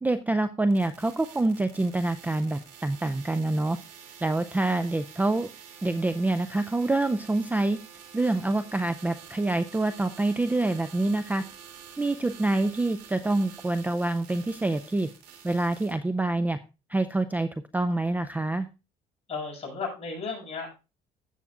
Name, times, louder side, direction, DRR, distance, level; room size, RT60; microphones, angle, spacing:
voice 1, 0.0-3.8 4.2-5.5 5.8-7.8 8.1-11.4 12.0-15.1 15.4-16.6 16.9-18.7, right 2 dB, 10° right, 12 dB, 0.4 m, -26 dB
sound 1, 0.7-15.9, right 8 dB, 80° right, 2.8 m, -48 dB
voice 2, 19.3-20.7, left 4 dB, 35° left, -1 dB, 6.6 m, -34 dB
15.5 x 7.1 x 2.4 m, 0.29 s
cardioid pair, 110°, 17 cm